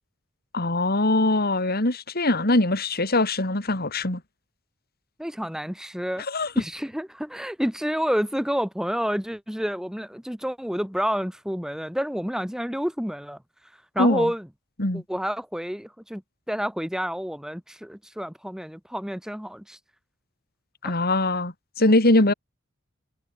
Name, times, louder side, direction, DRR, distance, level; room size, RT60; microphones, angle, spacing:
voice 1, 0.5-4.2 6.3-6.5 14.0-14.3 14.8-15.0 20.8-22.3, left 2 dB, 50° left, 3.8 m, -22 dB
voice 2, 5.2-6.2 6.6-13.4 14.0-14.5 14.9-16.2 16.5-19.8 20.8-20.9, equal, 5° right, 1.7 m, -29 dB
head